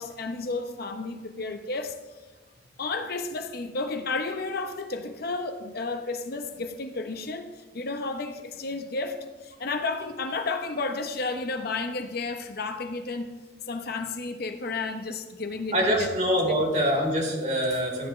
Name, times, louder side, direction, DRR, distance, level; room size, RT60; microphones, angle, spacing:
voice 1, 0.0-2.2 2.8-13.3 13.7-16.1 16.4-16.5, left 3 dB, 55° left, 6 dB, 0.9 m, -32 dB
voice 2, 15.7-18.1, equal, 40° right, -3 dB, 3.8 m, -24 dB
14.5 x 10.5 x 3.2 m, 1.3 s
head